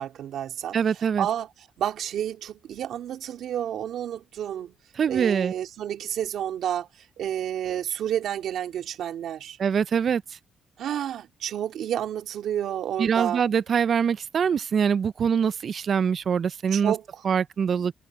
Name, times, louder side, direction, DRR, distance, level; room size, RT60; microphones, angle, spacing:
voice 1, 0.0-0.8 1.2-1.5 1.8-4.7 5.1-6.9 7.2-9.6 10.8-13.4 16.7-17.2, right 10 dB, 75° right, 2.3 m, -30 dB
voice 2, 0.7-1.3 5.0-5.5 9.6-10.2 13.0-16.9 17.2-17.9, right 7 dB, 50° right, 0.4 m, -24 dB
cardioid pair, 90°, 0 cm